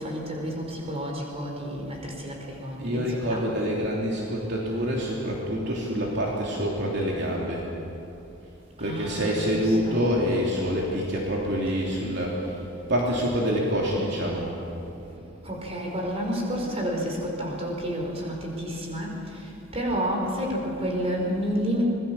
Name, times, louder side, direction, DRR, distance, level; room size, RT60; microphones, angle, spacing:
voice 1, 0.0-3.5 8.8-10.1 10.6-10.8 11.8-12.0 15.1-21.8, equal, 30° right, 0 dB, 5.2 m, -30 dB
voice 2, 2.8-7.7 8.8-12.6 12.9-14.5, equal, 60° right, -3 dB, 3.3 m, -26 dB
26.0 x 20.5 x 7.2 m, 2.9 s
head